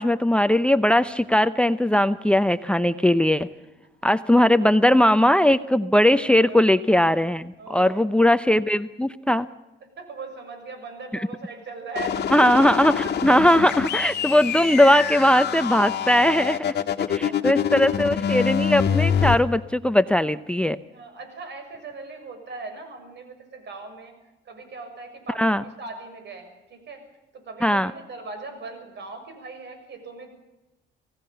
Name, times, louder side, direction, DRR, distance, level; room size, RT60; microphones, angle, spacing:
voice 1, 0.0-3.5 4.0-9.5 11.1-11.3 12.3-16.6 17.1-20.8 25.4-25.6 27.6-27.9, left 1 dB, 5° left, 14 dB, 0.7 m, -19 dB
voice 2, 7.6-8.1 10.0-12.4 13.0-13.1 14.2-14.3 15.2-15.3 17.2-17.8 20.9-24.1 24.4-27.0 27.3-30.3, right 3 dB, 60° right, 7 dB, 6.6 m, -39 dB
sound 1, 11.9-19.3, left 8 dB, 55° left, 1.9 m, -25 dB
26.5 x 17.0 x 6.9 m, 0.99 s
cardioid pair, 90°, 20 cm